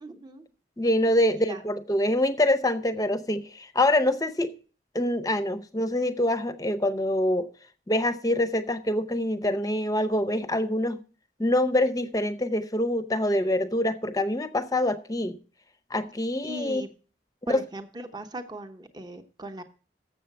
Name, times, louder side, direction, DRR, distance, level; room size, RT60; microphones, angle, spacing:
voice 1, 0.0-0.4 1.5-1.6 16.4-16.9 17.5-19.6, right 1 dB, 25° right, 0.9 m, -38 dB
voice 2, 0.8-4.5 4.9-7.5 7.9-11.0 11.4-15.3 15.9-16.8 17.5-17.6, left 1 dB, 20° left, 0.6 m, -25 dB
7.4 x 6.9 x 7.7 m
head